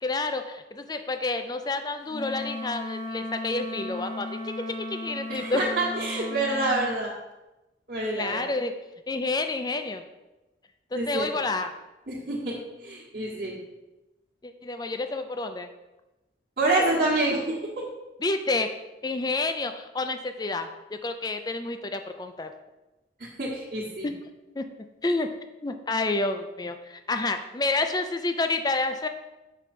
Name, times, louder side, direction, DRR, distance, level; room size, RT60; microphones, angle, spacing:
voice 1, 0.0-5.6 8.1-8.7 9.1-10.0 10.9-11.7 14.4-15.7 18.2-18.7 19.0-20.7 21.0-22.5 24.0-24.1 24.6-24.7 25.0-25.3 25.6-29.1, left 3 dB, 20° left, 8 dB, 0.4 m, -29 dB
Wind instrument woodwind instrument, 2.1-6.9, left 2 dB, 45° left, 1.1 m, -35 dB
voice 2, 5.3-7.1 7.9-8.4 10.9-11.3 12.1-13.6 16.6-17.6 23.2-24.1, right 2 dB, 55° right, -8 dB, 1.4 m, -27 dB
6.3 x 5.1 x 4.2 m, 1.0 s
head